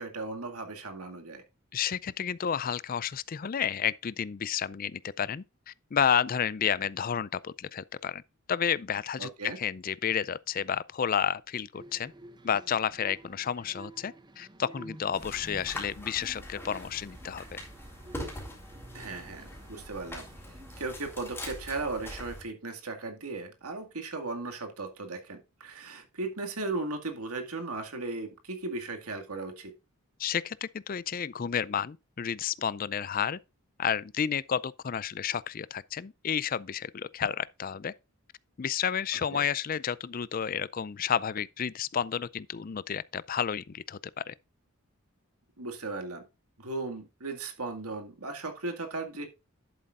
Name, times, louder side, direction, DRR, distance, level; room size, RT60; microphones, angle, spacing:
voice 1, 0.0-1.4 9.2-9.6 18.9-20.2 20.8-29.7 39.3-39.4 45.6-46.2 46.6-49.3, right 3 dB, 85° right, 2.1 m, -36 dB
voice 2, 1.7-8.2 8.5-12.1 12.4-17.4 30.2-33.4 33.8-37.9 38.6-44.0 44.3-44.4, left 8 dB, 40° left, 0.4 m, -31 dB
sound 1, 11.7-20.9, right 2 dB, 20° right, 0.8 m, -51 dB
sound 2, 15.1-22.4, left 1 dB, 10° left, 3.7 m, -43 dB
11.0 x 8.3 x 2.5 m
head